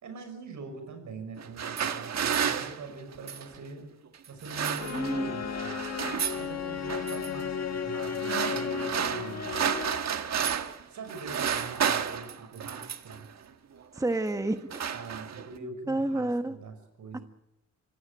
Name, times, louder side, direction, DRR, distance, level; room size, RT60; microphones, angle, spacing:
voice 1, 0.0-3.9 4.3-5.7 6.3-9.5 10.9-13.3 14.9-17.2, right 3 dB, 80° right, 8 dB, 6.0 m, -43 dB
sound 1, 1.4-3.6 4.3-5.3 5.5-6.5 6.9-7.3 8.0-10.8 11.1-13.2 14.0-14.2 14.5-15.6, right 8 dB, 60° right, 1.5 m, -31 dB
sound 2, 4.8-10.2, left 7 dB, 60° left, 1.8 m, -34 dB
voice 2, 4.9-5.3 13.9-14.8 15.9-16.6 17.1-17.2, right 2 dB, 10° right, 9 dB, 1.1 m, -29 dB
25.5 x 16.0 x 9.0 m, 0.89 s
cardioid pair, 100°, 30 cm